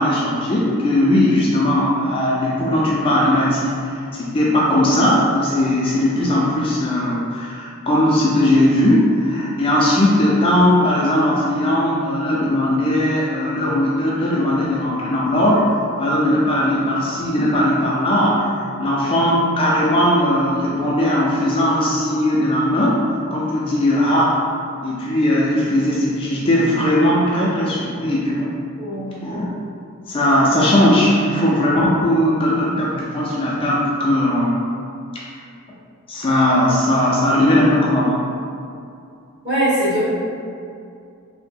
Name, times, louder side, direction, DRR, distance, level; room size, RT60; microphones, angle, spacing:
voice 1, 0.0-15.6 16.0-18.5 18.8-23.0 23.3-24.4 24.8-28.5 29.2-29.5 30.1-34.6 35.1-35.2 36.1-38.2, left 1 dB, 25° left, -5 dB, 0.3 m, -18 dB
voice 2, 28.8-29.2 39.4-40.0, right 1 dB, 50° right, -12 dB, 1.5 m, -21 dB
3.2 x 2.1 x 3.3 m, 2.4 s
head